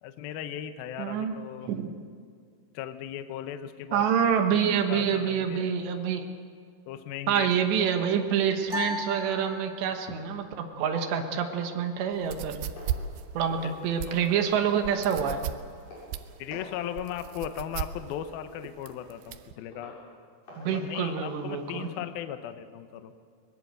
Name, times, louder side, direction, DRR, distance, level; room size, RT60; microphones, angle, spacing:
voice 1, 0.0-1.7 2.7-4.1 4.5-4.6 4.9-5.8 6.9-7.6 13.6-13.7 16.4-20.0 20.7-23.1, left 10 dB, 90° left, 9 dB, 2.1 m, -37 dB
voice 2, 1.0-1.3 1.7-1.9 3.9-6.3 7.3-12.6 13.3-15.4 20.6-21.9, right 7 dB, 70° right, 5 dB, 3.1 m, -27 dB
sound 1, 8.7-10.2, left 2 dB, 25° right, 3.0 m, -35 dB
sound 2, 10.9-12.4 12.7-13.1 13.5-13.8 14.1-14.4 14.7-14.9 15.3-15.5 15.9-16.1 16.5-16.8 17.1-17.3 17.7-18.0 18.4-18.5 19.0-19.1 19.7-20.0 20.4-22.0, left 1 dB, 40° left, 8.2 m, -48 dB
sound 3, 12.1-19.5, right 10 dB, 85° right, 2.3 m, -36 dB
22.5 x 20.5 x 7.9 m, 2.1 s
omnidirectional pair, 5.9 m